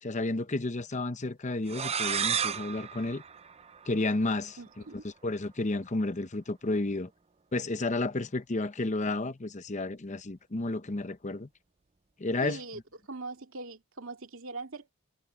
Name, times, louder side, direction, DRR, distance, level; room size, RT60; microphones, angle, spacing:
voice 1, 0.0-3.2 3.9-4.6 5.2-7.1 7.5-11.5 12.2-12.8, left 2 dB, 35° left, 0.9 m, -31 dB
sound 1, 1.7-4.3, right 7 dB, 30° right, 0.6 m, -33 dB
voice 2, 4.6-5.0 12.4-14.9, right 3 dB, 80° right, 2.4 m, -41 dB
head